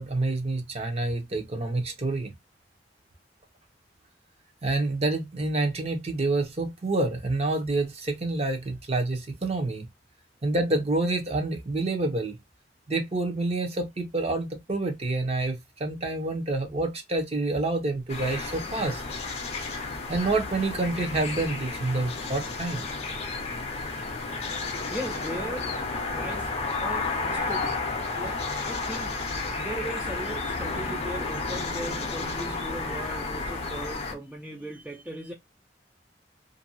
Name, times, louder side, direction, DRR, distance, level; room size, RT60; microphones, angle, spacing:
voice 1, 0.0-2.3 4.6-9.9 10.4-12.3 12.9-19.0 20.1-22.9, right 2 dB, 35° right, 0.7 m, -28 dB
sound 1, 18.1-34.1, left 3 dB, 35° left, 0.6 m, -32 dB
voice 2, 24.9-25.8 26.1-27.9 28.2-29.2 29.5-35.3, right 1 dB, 5° right, 0.4 m, -38 dB
2.6 x 2.2 x 2.6 m
head